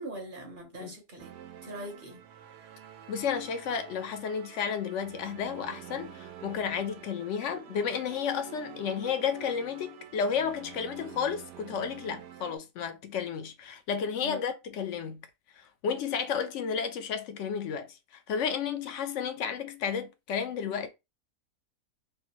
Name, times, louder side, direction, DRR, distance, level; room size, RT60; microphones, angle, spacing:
voice 1, 0.0-1.3 1.6-2.2 14.2-14.4, right 1 dB, 40° right, 0.9 m, -41 dB
sound 1, 1.2-12.6, right 10 dB, 85° right, 1.2 m, -48 dB
voice 2, 3.1-15.2 15.6-20.9, left 7 dB, 65° left, 0.7 m, -32 dB
3.3 x 2.5 x 2.9 m
omnidirectional pair, 1.7 m